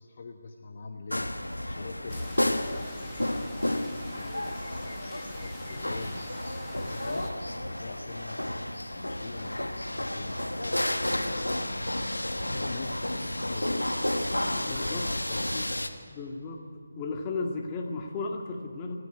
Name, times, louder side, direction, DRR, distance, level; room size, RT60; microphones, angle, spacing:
voice 1, 0.0-3.3 3.7-4.5 5.4-6.1 6.8-8.5 8.9-11.5 12.5-13.9 14.5-15.9, left 4 dB, 40° left, 4 dB, 1.2 m, -43 dB
sound 1, 1.1-15.9, left 1 dB, 90° left, 1.6 m, -31 dB
sound 2, 2.1-7.3, left 1 dB, 5° left, 1.9 m, -47 dB
voice 2, 14.4-15.3 16.1-16.7 17.0-19.0, left 3 dB, 20° left, 1 dB, 2.2 m, -35 dB
29.0 x 10.0 x 9.3 m, 2.3 s
figure-of-eight pair, 155°, 0 cm